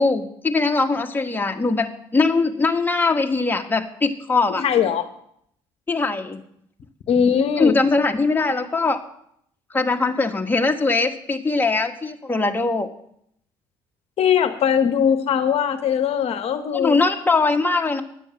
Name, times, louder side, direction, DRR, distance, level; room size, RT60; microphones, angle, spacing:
voice 1, 0.0-4.6 5.9-6.4 7.6-9.0 9.7-12.9 16.7-18.0, left 3 dB, 15° left, 4 dB, 1.4 m, -21 dB
voice 2, 4.6-5.0 7.1-7.7 14.2-17.0, left 8 dB, 60° left, 10 dB, 0.9 m, -20 dB
10.0 x 7.0 x 7.1 m, 0.71 s
supercardioid pair, 65°, 12 cm